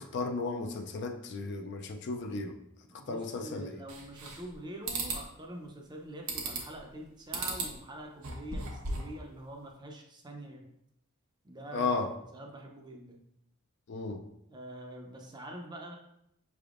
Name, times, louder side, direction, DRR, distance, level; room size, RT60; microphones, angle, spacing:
voice 1, 0.0-2.6 3.1-3.8 11.7-12.1 13.9-14.2, left 3 dB, 50° left, 0.4 m, -34 dB
voice 2, 2.9-10.7 11.4-12.0 12.3-13.2 14.5-16.0, right 1 dB, 20° right, 0.5 m, -45 dB
sound 1, 3.9-4.5 4.9-5.2 6.3-6.8 7.3-7.7 8.1-9.2, right 3 dB, 85° right, 0.9 m, -36 dB
5.7 x 3.4 x 2.4 m
head